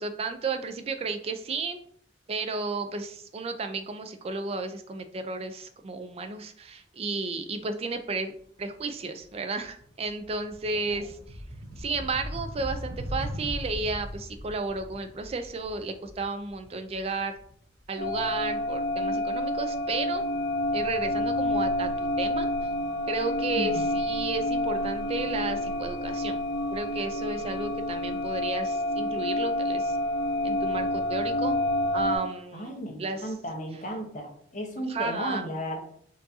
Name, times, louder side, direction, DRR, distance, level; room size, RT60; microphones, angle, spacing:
voice 1, 0.0-1.8 2.3-8.3 8.6-11.4 11.8-17.4 17.9-20.3 20.7-22.5 23.1-26.4 26.7-30.0 30.4-31.6 31.9-32.7 33.0-33.3 34.9-35.4, right 3 dB, 35° right, 8 dB, 0.4 m, -33 dB
sound 1, 8.7-9.0 9.3-18.2, equal, 85° right, 0.8 m, -39 dB
sound 2, 18.0-32.2, left 1 dB, 70° left, 1.0 m, -28 dB
voice 2, 32.5-35.8, equal, 40° left, 2 dB, 0.8 m, -34 dB
4.5 x 2.6 x 2.7 m, 0.62 s
head